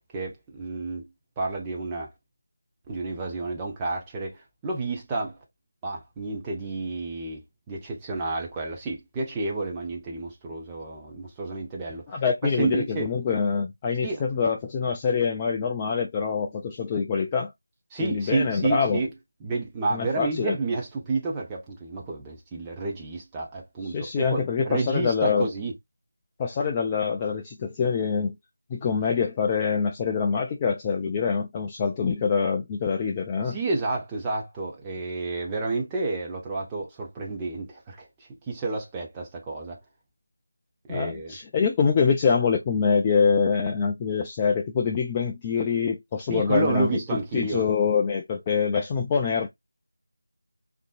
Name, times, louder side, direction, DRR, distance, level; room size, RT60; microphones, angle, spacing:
voice 1, 0.1-1.0 1.4-2.1 2.9-5.4 5.8-13.1 14.0-14.2 17.9-19.1 19.4-25.7 33.4-38.1 38.5-39.8 40.9-41.4 46.3-47.6, right 3 dB, 10° right, 0.7 m, -30 dB
voice 2, 12.1-17.5 18.0-19.0 19.9-20.6 23.9-25.5 26.4-28.3 28.7-33.6 40.9-49.5, left 6 dB, 15° left, 0.3 m, -25 dB
3.5 x 2.6 x 2.4 m
figure-of-eight pair, 165°, 0 cm